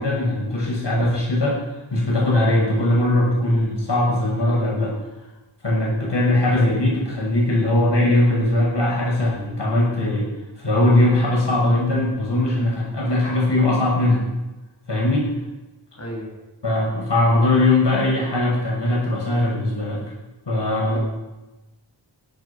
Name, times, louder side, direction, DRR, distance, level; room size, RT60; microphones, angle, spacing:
voice 1, 0.0-4.9 5.6-10.3 10.6-14.2 14.9-15.3 16.6-20.0 20.5-21.0, left 1 dB, 60° left, -3 dB, 6.7 m, -20 dB
voice 2, 16.0-16.3 20.8-21.0, equal, 35° left, -4 dB, 5.8 m, -32 dB
16.5 x 11.5 x 5.9 m, 1.0 s
wide cardioid pair, 70°, 47 cm